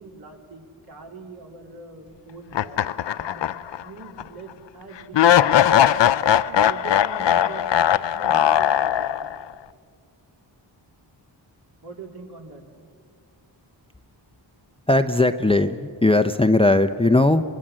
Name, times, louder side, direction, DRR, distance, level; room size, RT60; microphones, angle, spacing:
voice 1, 0.0-3.5 3.8-6.1 6.5-7.7 8.1-9.3 11.8-12.6, right 3 dB, 55° right, 0 dB, 3.9 m, -42 dB
sound 1, 2.5-3.8 4.2-4.3 5.1-9.4, left 10 dB, 70° left, 0.7 m, -19 dB
voice 2, 14.9-17.4, left 2 dB, 10° left, 9 dB, 0.7 m, -18 dB
25.0 x 20.5 x 7.6 m, 2.1 s
wide cardioid pair, 70°, 45 cm